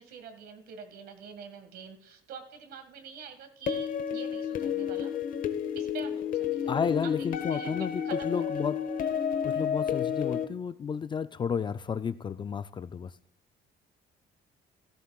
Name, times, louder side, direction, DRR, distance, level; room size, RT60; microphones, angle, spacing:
voice 1, 0.0-5.1 5.8-8.5, right 6 dB, 70° right, 1.7 m, -46 dB
sound 1, 3.7-10.5, left 8 dB, 55° left, 0.9 m, -31 dB
voice 2, 6.7-8.9 9.4-13.2, left 6 dB, 30° left, 0.3 m, -32 dB
15.0 x 13.0 x 2.3 m
cardioid pair, 110°, 17 cm